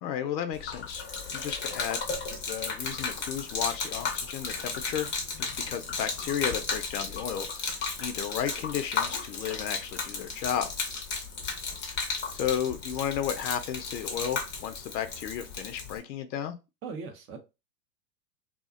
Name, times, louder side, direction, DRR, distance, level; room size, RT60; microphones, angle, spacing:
voice 1, 0.0-1.0 1.3-2.0 2.5-5.1 5.4-10.7 12.3-16.6, left 9 dB, 80° left, 0.6 m, -33 dB
Gurgling / Liquid, 0.5-16.0, left 4 dB, 25° left, 0.6 m, -34 dB
voice 2, 16.8-17.4, right 5 dB, 25° right, 0.5 m, -39 dB
2.4 x 2.1 x 2.4 m
hypercardioid pair, 110°, 50 cm